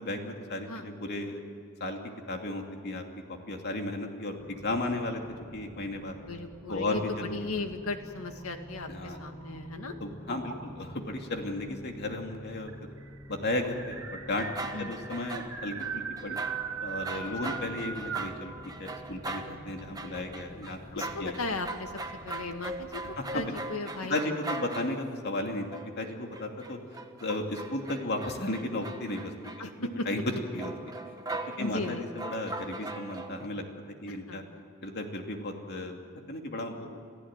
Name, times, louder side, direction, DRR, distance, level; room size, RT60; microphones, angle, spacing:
voice 1, 0.0-1.4 1.8-2.0 2.3-3.0 3.3-5.2 5.5-6.2 6.7-7.6 8.9-9.2 10.0-12.7 13.3-14.5 14.8-16.4 16.8-18.5 18.8-21.3 23.2-23.6 24.1-25.7 26.0-26.8 27.2-29.3 29.6-30.2 30.5-30.7 31.6-33.6 34.0-34.4 34.8-36.0 36.3-37.0, left 2 dB, 50° left, 3 dB, 2.6 m, -34 dB
sound 1, 4.4-23.6, equal, 5° left, 1.9 m, -49 dB
voice 2, 6.3-10.0 14.7-14.9 17.1-17.6 20.9-21.9 22.2-23.0 23.3-24.4 29.6-29.7 30.0-30.1 31.6-32.0 34.3-34.5, left 3 dB, 90° left, 6 dB, 2.1 m, -36 dB
sound 2, 8.4-9.8 10.3-10.9 11.9-12.0 12.3-12.4 12.7-18.4, right 6 dB, 70° right, 2.0 m, -39 dB
sound 3, 14.3-15.9 16.2-25.2 25.7-29.9 30.6-33.4, right 2 dB, 20° right, 1.4 m, -41 dB
27.5 x 15.0 x 9.0 m, 2.5 s
head